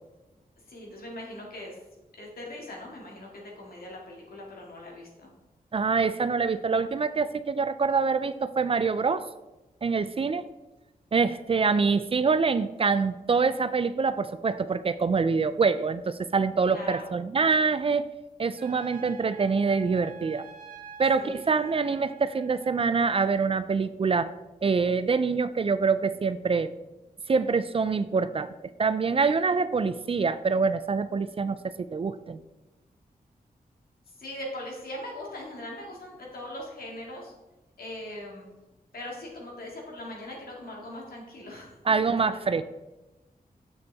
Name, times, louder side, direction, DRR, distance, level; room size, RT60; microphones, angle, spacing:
voice 1, 0.7-1.8 2.2-5.3 16.6-17.1 21.2-21.4 21.8-21.9 34.2-37.3 37.8-38.5 38.9-42.6, left 1 dB, 75° left, -2 dB, 2.1 m, -41 dB
voice 2, 5.7-9.3 9.8-10.5 11.1-18.1 18.4-20.5 21.0-24.3 24.6-26.7 27.3-28.5 28.8-31.6 31.9-32.4 41.9-42.6, right 4 dB, 40° right, 13 dB, 0.3 m, -25 dB
Trumpet, 18.6-22.9, right 7 dB, 60° right, 1.5 m, -47 dB
7.0 x 6.7 x 3.5 m, 1.0 s
cardioid pair, 75°, 15 cm